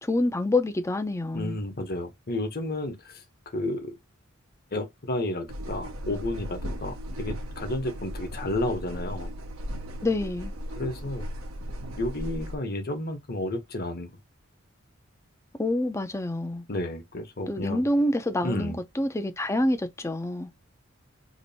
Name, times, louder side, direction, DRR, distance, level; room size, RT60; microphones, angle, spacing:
voice 1, 0.0-1.6 10.0-10.5 15.6-16.6 17.5-20.5, left 1 dB, 15° left, 0.5 m, -27 dB
voice 2, 1.3-3.2 3.5-3.9 4.7-9.3 10.8-11.2 12.0-14.1 16.7-17.8 18.4-18.8, left 1 dB, 45° left, 1.1 m, -32 dB
sound 1, 5.5-12.6, equal, 85° right, 0.8 m, -36 dB
2.9 x 2.6 x 4.0 m
head